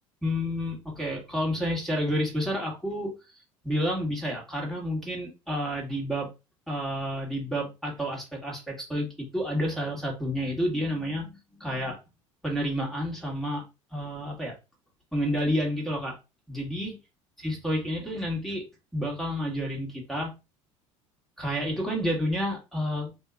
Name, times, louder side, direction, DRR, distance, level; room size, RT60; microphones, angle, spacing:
voice 1, 0.2-6.3 6.7-12.0 12.4-13.7 13.9-14.6 15.1-16.2 16.5-17.0 17.4-18.6 18.9-20.3 21.4-23.1, equal, ahead, 1.7 m, -30 dB
4.4 x 2.8 x 2.4 m
figure-of-eight pair, 65°, 17 cm